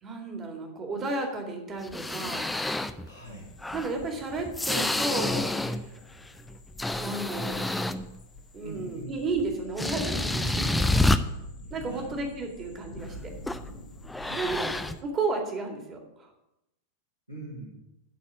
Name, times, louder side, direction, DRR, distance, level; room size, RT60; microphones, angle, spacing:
voice 1, 0.0-2.5 3.7-5.9 7.0-7.7 8.5-11.0 11.7-13.3 14.3-14.7 15.0-16.3, right 3 dB, 25° right, 3 dB, 2.2 m, -33 dB
sound 1, 1.8-3.1 3.6-5.9 6.3-8.2 9.4-9.5 9.8-11.2 13.5-13.7 14.1-15.0, left 2 dB, 5° left, 0.5 m, -28 dB
voice 2, 3.0-3.5 8.6-9.1 11.8-12.2 12.5-12.6 14.2-14.7 17.3-17.8, right 1 dB, 85° right, -10 dB, 3.4 m, -43 dB
sound 2, 3.2-15.0, left 2 dB, 60° left, 1.5 m, -47 dB
11.0 x 4.3 x 7.2 m, 0.89 s
figure-of-eight pair, 90°, 0 cm